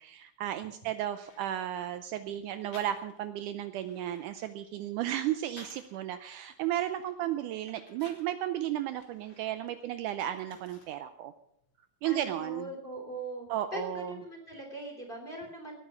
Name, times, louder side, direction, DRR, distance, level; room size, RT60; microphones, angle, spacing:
voice 1, 0.0-11.3 12.0-12.7 13.5-14.1, right 12 dB, 75° right, 10 dB, 2.0 m, -34 dB
sound 1, 1.1-1.9 2.7-3.3 3.7-6.0 6.5-8.3 8.9-11.1 11.4-12.2, left 3 dB, 40° left, 2.7 m, -56 dB
voice 2, 12.0-15.8, right 1 dB, 15° left, 2 dB, 3.0 m, -41 dB
18.5 x 9.3 x 6.2 m, 0.72 s
omnidirectional pair, 3.9 m